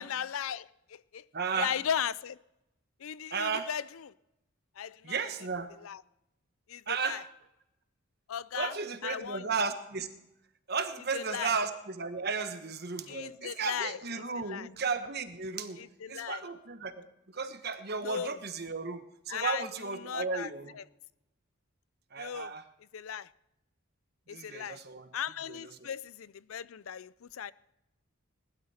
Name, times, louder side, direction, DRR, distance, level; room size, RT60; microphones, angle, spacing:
voice 1, 0.0-1.2 1.5-2.4 3.0-4.1 4.8-5.3 5.7-6.0 6.7-7.2 8.3-9.5 11.1-11.5 13.1-14.7 15.8-16.5 18.0-18.4 19.3-20.9 22.2-22.6 22.9-23.3 24.3-24.8 25.1-27.5, left 8 dB, 80° left, 0.5 m, -37 dB
voice 2, 1.3-1.7 3.3-3.7 5.0-5.7 6.9-7.2 8.5-10.1 10.7-15.8 16.1-20.8 22.1-22.6 24.3-25.1, right 5 dB, 50° right, 1.3 m, -34 dB
19.5 x 12.5 x 4.4 m
head